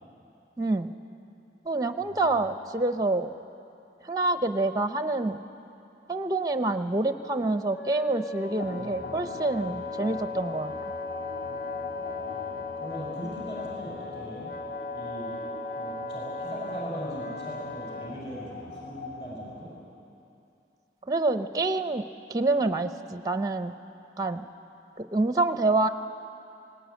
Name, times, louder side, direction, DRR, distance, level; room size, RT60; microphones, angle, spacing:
voice 1, 0.6-0.9 1.6-3.3 4.0-5.4 6.1-10.7 21.1-22.0 22.3-23.7 24.2-24.4 25.0-25.9, right 2 dB, 20° right, 9 dB, 0.6 m, -27 dB
voice 2, 2.0-2.4 11.9-14.5 14.9-15.4 15.8-19.7, right 1 dB, 30° left, -5 dB, 5.3 m, -40 dB
Wind instrument woodwind instrument, 7.3-18.1, left 3 dB, 55° left, 0.7 m, -38 dB
sound 1, 8.6-20.0, left 3 dB, 70° left, 1.8 m, -41 dB
19.0 x 19.0 x 9.2 m, 2.7 s
head